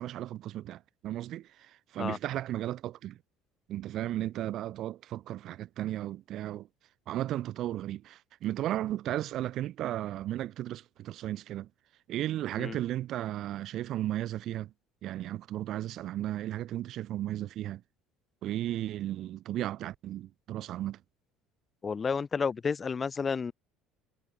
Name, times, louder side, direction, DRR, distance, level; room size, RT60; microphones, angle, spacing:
voice 1, 0.0-3.2 3.7-6.7 7.1-11.7 12.1-14.7 15.0-17.8 18.4-21.0, right 13 dB, 55° right, 2.4 m, -35 dB
voice 2, 21.8-23.5, left 5 dB, 25° left, 1.5 m, -31 dB
cardioid pair, 115°, 0 cm